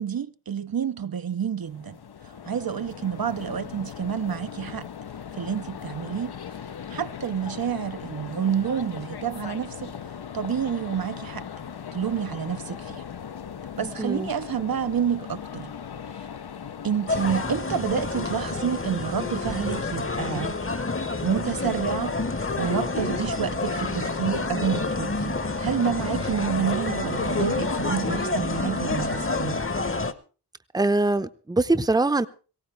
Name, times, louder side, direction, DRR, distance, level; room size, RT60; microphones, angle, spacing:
voice 1, 0.0-2.0 2.2-4.9 5.4-6.3 6.9-9.9 10.3-11.5 11.9-13.0 13.8-15.7 16.1-16.3 16.8-20.6 21.2-29.6, right 8 dB, 65° right, 0.6 m, -29 dB
sound 1, 1.6-17.4, left 8 dB, 75° left, 0.7 m, -39 dB
voice 2, 14.0-14.3 30.7-32.3, right 2 dB, 10° right, 0.7 m, -23 dB
sound 2, 17.1-30.1, left 3 dB, 35° left, 1.0 m, -28 dB
19.0 x 17.0 x 3.3 m
wide cardioid pair, 75°, 39 cm